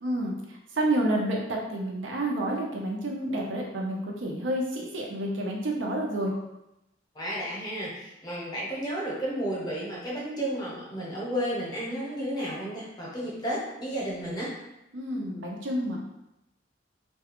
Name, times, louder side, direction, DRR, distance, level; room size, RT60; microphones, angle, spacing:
voice 1, 0.0-6.3 14.9-16.0, right 1 dB, 80° right, -1 dB, 0.6 m, -29 dB
voice 2, 7.1-14.5, equal, 20° left, -5 dB, 0.7 m, -32 dB
2.3 x 2.3 x 2.9 m, 0.89 s
head